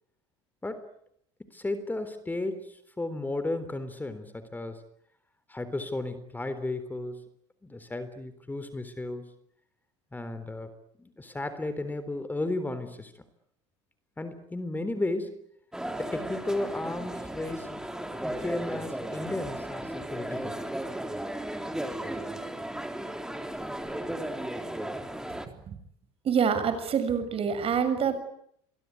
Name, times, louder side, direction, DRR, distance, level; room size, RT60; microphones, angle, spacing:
voice 1, 1.5-4.8 5.5-7.2 7.6-9.3 10.1-10.7 11.0-13.1 14.2-15.4 16.0-17.8 18.2-20.7, left 2 dB, 10° left, 11 dB, 3.7 m, -34 dB
sound 1, 15.7-25.5, right 1 dB, 5° right, 3.7 m, -35 dB
voice 2, 26.2-28.2, right 7 dB, 40° right, 11 dB, 6.8 m, -26 dB
26.5 x 22.5 x 9.7 m, 0.71 s
hypercardioid pair, 85°, 14 cm